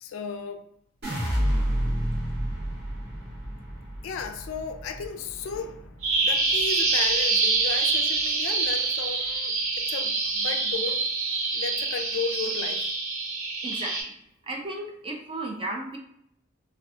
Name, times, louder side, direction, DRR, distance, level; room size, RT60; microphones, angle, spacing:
voice 1, 0.0-0.6 4.0-11.0 11.5-12.8, left 5 dB, 70° left, 0.3 m, -34 dB
sound 1, 1.0-7.2 7.6-8.2, equal, 55° right, 0.8 m, -30 dB
Bird vocalization bird call bird song, 6.0-14.0, right 3 dB, 80° right, 0.6 m, -26 dB
voice 2, 13.6-13.9 14.4-16.0, right 2 dB, 25° right, 0.4 m, -34 dB
2.6 x 2.3 x 2.3 m
head